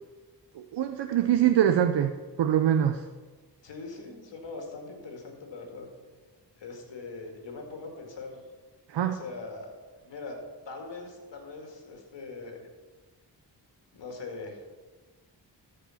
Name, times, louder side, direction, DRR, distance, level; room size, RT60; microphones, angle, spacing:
voice 1, 0.6-2.1 2.4-3.0 8.9-9.1, right 10 dB, 75° right, 7 dB, 0.7 m, -23 dB
voice 2, 3.6-5.9 6.6-8.4 9.0-9.7 10.0-10.4 10.7-12.6 13.9-14.6, left 3 dB, 80° left, 2 dB, 2.1 m, -41 dB
13.5 x 5.1 x 5.7 m, 1.3 s
cardioid pair, 50°, 42 cm